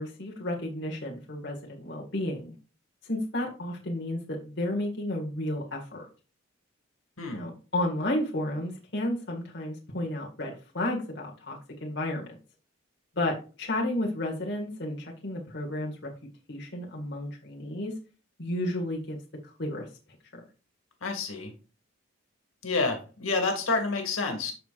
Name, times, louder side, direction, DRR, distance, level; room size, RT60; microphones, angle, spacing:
voice 1, 0.0-2.5 3.1-6.1 7.3-12.3 13.2-16.1 16.5-17.9 18.4-19.2 19.6-19.9, left 1 dB, 55° left, -2 dB, 2.0 m, -32 dB
voice 2, 21.0-21.5 22.6-24.5, left 3 dB, 85° left, 3 dB, 2.5 m, -28 dB
14.0 x 4.7 x 2.5 m, 0.34 s
head